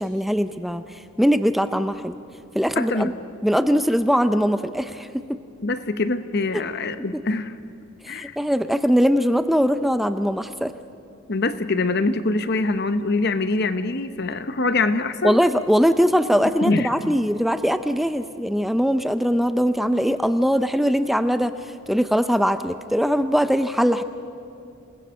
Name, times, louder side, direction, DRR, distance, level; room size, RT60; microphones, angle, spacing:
voice 1, 0.0-2.2 2.5-3.1 3.4-5.4 6.5-6.6 7.1-7.2 8.0-10.7 15.2-24.0, equal, ahead, 10 dB, 0.4 m, -21 dB
voice 2, 2.8-3.1 5.6-7.5 8.1-8.3 11.3-15.4 16.4-17.1, left 3 dB, 50° left, 11 dB, 0.9 m, -24 dB
28.0 x 19.5 x 6.4 m, 2.5 s
head